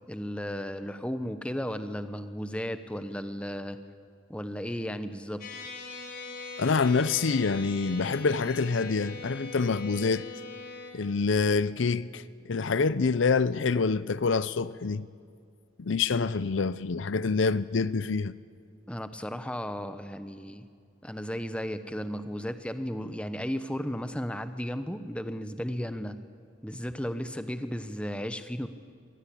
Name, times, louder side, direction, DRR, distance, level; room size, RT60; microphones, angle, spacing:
voice 1, 0.0-3.8 4.3-5.4 18.9-20.6 21.0-26.2 26.6-28.7, equal, 5° left, 0.9 m, -34 dB
sound 1, 5.4-10.9, left 3 dB, 50° left, 4.2 m, -41 dB
voice 2, 6.6-10.2 10.9-15.1 15.8-18.3, left 4 dB, 75° left, 0.6 m, -26 dB
23.5 x 19.0 x 8.5 m
head